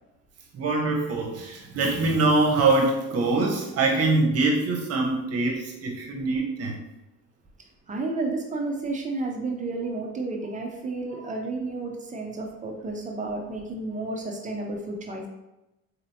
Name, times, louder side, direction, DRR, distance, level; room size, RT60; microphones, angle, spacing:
voice 1, 0.5-6.8, right 3 dB, 50° right, 0 dB, 0.9 m, -24 dB
voice 2, 7.9-15.3, right 2 dB, 25° right, 1 dB, 0.6 m, -31 dB
4.1 x 2.9 x 2.8 m, 0.94 s
cardioid pair, 130°, 31 cm